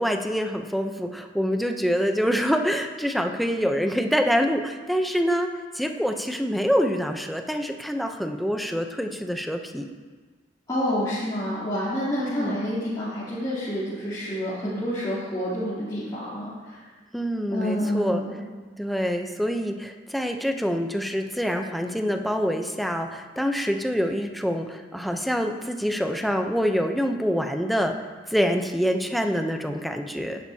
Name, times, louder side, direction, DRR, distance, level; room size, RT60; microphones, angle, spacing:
voice 1, 0.0-5.5 5.7-9.9 12.2-12.5 17.1-18.2 18.8-27.9 28.3-30.4, equal, ahead, 4 dB, 0.7 m, -26 dB
voice 2, 10.7-16.9 17.5-18.4, equal, 20° left, -13 dB, 3.1 m, -28 dB
17.0 x 11.0 x 2.8 m, 1.4 s
head